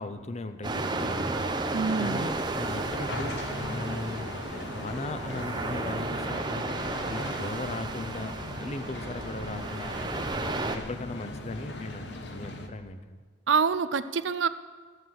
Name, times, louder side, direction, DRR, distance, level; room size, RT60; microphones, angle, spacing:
voice 1, 0.0-1.7 2.0-4.4 4.7-10.3 10.7-13.2, left 2 dB, 35° left, 10 dB, 0.7 m, -38 dB
sound 1, 0.6-10.8, right 2 dB, 25° right, 0.7 m, -33 dB
voice 2, 1.7-2.3 13.5-14.5, right 5 dB, 85° right, 13 dB, 0.6 m, -26 dB
sound 2, 2.6-12.7, left 1 dB, 65° left, 1.1 m, -39 dB
13.0 x 8.1 x 7.6 m, 1.5 s
head